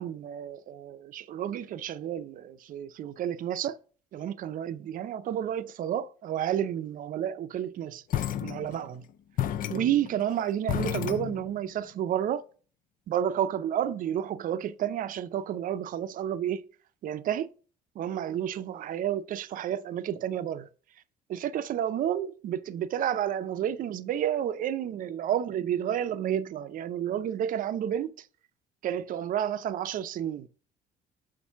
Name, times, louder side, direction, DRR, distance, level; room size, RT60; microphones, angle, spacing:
voice 1, 0.0-3.8 4.1-8.0 8.4-9.0 9.7-12.4 13.1-16.6 17.0-17.5 18.0-20.7 21.3-28.3 28.8-30.5, right 10 dB, 55° right, 0.5 m, -31 dB
sound 1, 8.1-9.0 9.4-11.7, left 11 dB, 55° left, 0.4 m, -32 dB
7.0 x 2.6 x 5.6 m
cardioid pair, 110°, 17 cm